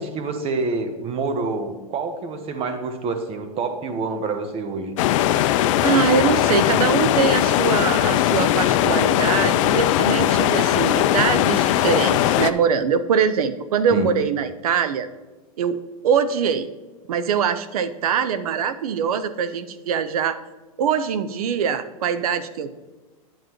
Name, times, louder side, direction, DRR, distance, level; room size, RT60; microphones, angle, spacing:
voice 1, 0.0-5.0 13.9-14.1, right 4 dB, 30° right, 7 dB, 1.0 m, -27 dB
sound 1, 5.0-12.5, left 12 dB, 55° left, 0.4 m, -19 dB
voice 2, 5.8-15.1 15.6-15.8 16.0-16.7 17.1-20.4 20.8-22.7, right 7 dB, 80° right, 12 dB, 0.6 m, -23 dB
9.4 x 7.3 x 3.1 m, 1.2 s
hypercardioid pair, 115°, 19 cm